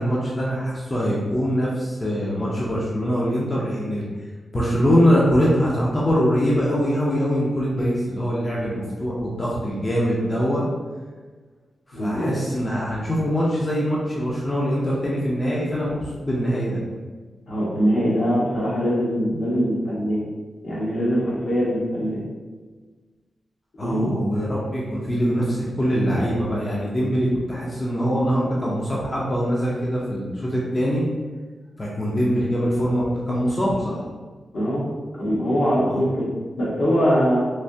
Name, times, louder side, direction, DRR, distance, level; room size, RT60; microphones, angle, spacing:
voice 1, 0.0-4.1 4.5-10.6 11.9-16.8 23.8-31.0 31.8-34.0 35.8-36.0, equal, 20° left, -5 dB, 0.5 m, -23 dB
voice 2, 11.9-12.4 17.5-20.2 20.6-22.2 23.8-24.1 34.5-34.9 35.1-37.4, equal, 65° left, -7 dB, 1.2 m, -22 dB
3.2 x 2.7 x 2.7 m, 1.4 s
wide cardioid pair, 125°, 0 cm